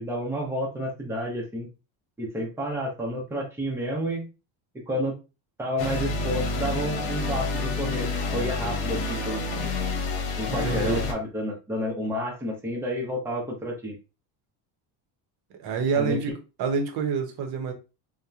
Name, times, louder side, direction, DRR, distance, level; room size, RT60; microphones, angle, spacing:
voice 1, 0.0-1.7 2.2-4.3 4.7-5.1 5.6-9.4 10.4-14.0 15.9-16.2, equal, 5° right, 0.6 m, -30 dB
sound 1, 5.8-11.1, left 3 dB, 75° left, 0.9 m, -28 dB
voice 2, 10.5-11.1 15.6-17.7, right 5 dB, 50° right, 0.8 m, -28 dB
2.8 x 2.1 x 2.3 m
cardioid pair, 145°, 48 cm